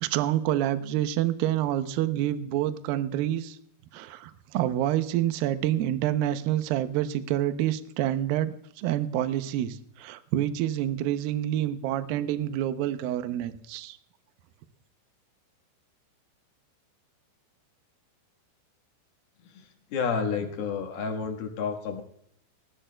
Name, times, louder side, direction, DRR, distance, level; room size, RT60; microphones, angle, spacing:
voice 1, 0.0-3.6 3.9-14.0, right 12 dB, 90° right, 10 dB, 2.0 m, -27 dB
voice 2, 19.5-22.0, left 5 dB, 65° left, 4 dB, 3.1 m, -30 dB
19.0 x 16.0 x 2.2 m, 0.72 s
omnidirectional pair, 5.1 m